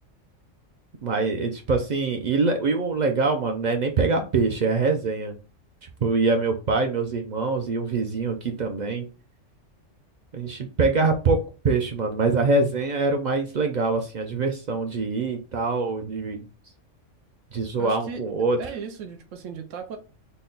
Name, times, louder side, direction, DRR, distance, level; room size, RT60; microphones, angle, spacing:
voice 1, 1.0-5.3 6.0-9.1 10.3-16.4 17.5-18.6, right 3 dB, 65° right, 0.4 m, -24 dB
voice 2, 17.8-18.2 18.6-20.0, right 6 dB, 90° right, 1.0 m, -36 dB
3.9 x 2.2 x 3.7 m
omnidirectional pair, 1.3 m